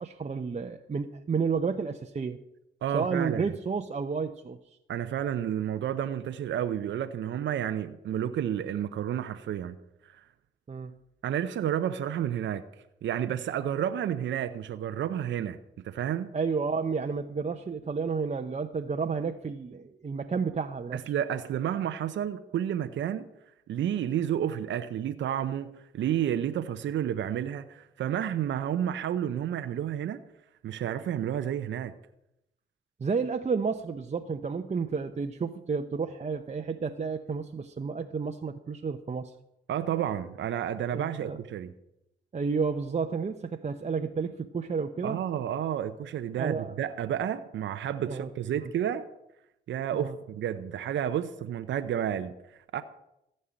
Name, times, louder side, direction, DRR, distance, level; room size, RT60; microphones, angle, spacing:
voice 1, 0.0-2.4 2.9-4.6 10.7-10.9 16.3-21.0 33.0-39.3 40.9-41.4 42.3-45.2 46.4-46.7 48.0-48.3 49.9-50.2, right 5 dB, 35° right, 0.8 m, -31 dB
voice 2, 2.8-3.5 4.9-9.8 10.0-10.2 11.2-12.6 13.0-15.6 15.8-16.3 20.9-23.3 23.7-30.2 30.6-31.9 39.7-41.7 45.0-49.0 49.7-52.3 52.7-52.8, right 10 dB, 65° right, 0.7 m, -31 dB
14.5 x 5.5 x 8.7 m
supercardioid pair, 55°, 20 cm